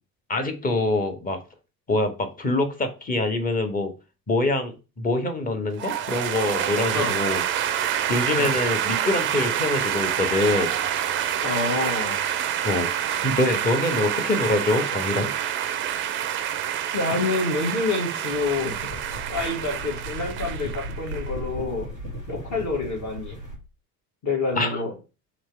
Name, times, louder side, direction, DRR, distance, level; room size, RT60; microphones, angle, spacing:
voice 1, 0.3-1.4 1.9-3.9 4.3-7.4 8.1-10.7 12.6-12.9 13.2-15.3 24.6-24.8, left 2 dB, 15° left, 6 dB, 1.0 m, -24 dB
sound 1, 5.8-21.3, right 10 dB, 25° right, 0.4 m, -27 dB
voice 2, 11.4-12.2 16.9-18.9 19.3-21.9 22.3-23.4 24.2-24.9, left 3 dB, 35° left, -1 dB, 1.4 m, -27 dB
sound 2, 18.3-23.6, equal, 90° left, 1.2 m, -36 dB
3.2 x 3.0 x 4.4 m, 0.31 s
figure-of-eight pair, 65°, 48 cm